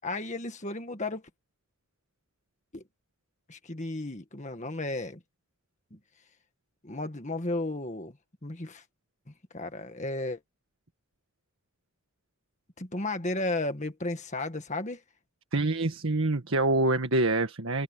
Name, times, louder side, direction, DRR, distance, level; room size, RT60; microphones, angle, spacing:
voice 1, 0.0-1.2 2.7-2.8 3.5-5.2 5.9-6.0 6.8-8.2 8.4-8.8 9.5-10.4 12.8-15.0, left 2 dB, 30° left, 1.8 m, -34 dB
voice 2, 15.5-17.8, right 2 dB, 65° right, 1.7 m, -26 dB
head